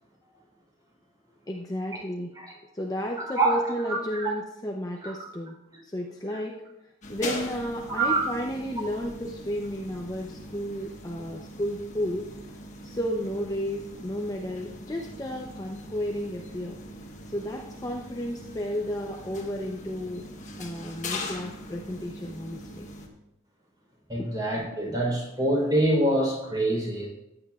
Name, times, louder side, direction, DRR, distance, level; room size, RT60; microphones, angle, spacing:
voice 1, 1.5-2.3 2.7-5.6 5.8-6.6 7.1-12.2 12.8-16.8 17.3-20.2 20.6-22.9 24.2-24.3, equal, 20° left, 0 dB, 0.6 m, -32 dB
voice 2, 3.2-4.3 4.9-5.2 7.9-8.2 24.1-27.1, right 1 dB, 20° right, -2 dB, 3.7 m, -26 dB
sound 1, 7.0-23.1, left 1 dB, 35° left, 1.3 m, -41 dB
14.5 x 9.6 x 2.4 m, 0.89 s
head